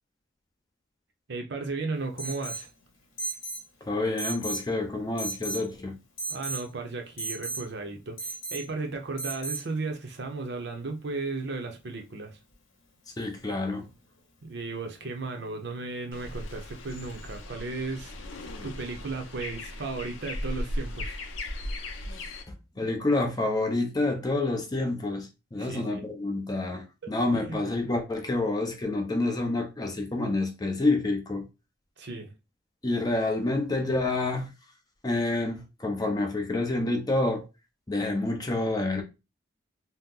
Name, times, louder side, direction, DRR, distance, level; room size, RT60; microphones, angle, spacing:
voice 1, 1.3-2.7 6.3-12.4 14.4-21.2 22.8-22.9 25.6-26.0 27.0-27.6 32.0-32.3, right 3 dB, 55° right, 0.6 m, -35 dB
Alarm, 2.2-2.7 3.2-3.6 4.2-4.7 5.2-5.6 6.2-6.6 7.2-7.6 8.2-8.6 9.2-9.6, right 3 dB, 90° left, 1.1 m, -34 dB
voice 2, 3.8-6.0 13.2-13.9 22.5-31.5 32.8-34.5 35.0-37.4 37.9-39.0, left 2 dB, 20° left, 0.5 m, -28 dB
sound 1, 16.1-22.4, left 1 dB, 70° left, 0.6 m, -37 dB
2.8 x 2.1 x 3.6 m
head